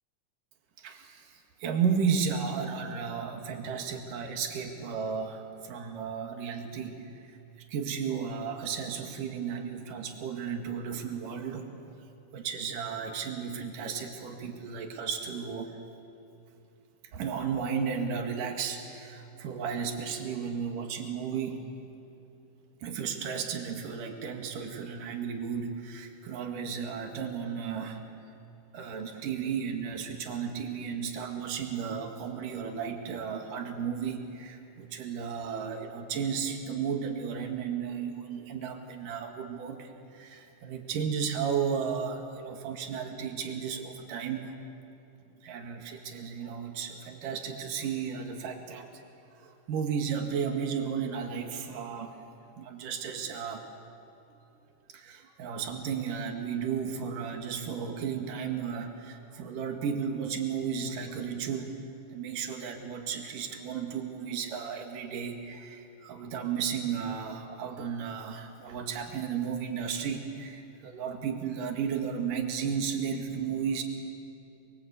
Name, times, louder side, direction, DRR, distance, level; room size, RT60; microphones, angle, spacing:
voice 1, 0.8-7.4 7.7-11.7 12.3-15.8 17.1-21.6 22.8-28.1 28.7-44.5 45.4-49.0 49.4-52.2 52.6-53.7 54.9-61.8 62.1-73.8, right 6 dB, 70° right, 4 dB, 3.5 m, -34 dB
29.5 x 22.5 x 8.4 m, 2.8 s
omnidirectional pair, 3.9 m